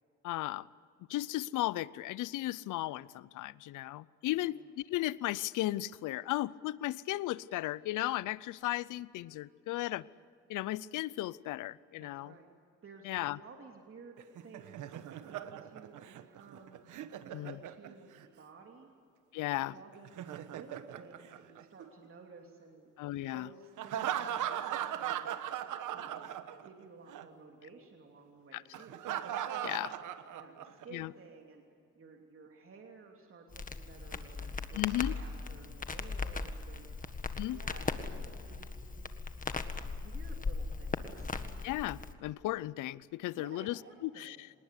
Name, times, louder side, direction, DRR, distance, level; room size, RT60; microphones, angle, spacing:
voice 1, 0.2-0.7 1.1-10.0 10.5-12.3 13.0-13.4 17.3-17.6 19.3-19.8 23.0-23.5 28.5-28.6 29.6-29.9 30.9-31.1 34.7-35.1 37.4-37.6 41.6-44.5, left 16 dB, 85° left, 0.7 m, -35 dB
voice 2, 12.0-12.5 12.8-16.8 17.2-18.9 19.5-20.1 20.4-22.9 23.3-24.5 24.8-25.4 25.9-26.3 26.6-29.1 30.3-31.6 31.9-36.9 37.4-39.2 39.8-41.3 43.3-44.4, right 4 dB, 45° right, 3.0 m, -54 dB
Laughter, 14.2-18.2 19.9-22.1 23.8-26.8 27.1-27.2 28.7-30.8, right 10 dB, 80° right, 1.3 m, -39 dB
Crackle, 33.5-42.1, left 4 dB, 25° left, 1.7 m, -38 dB
26.5 x 20.0 x 8.3 m
cardioid pair, 90°, 30 cm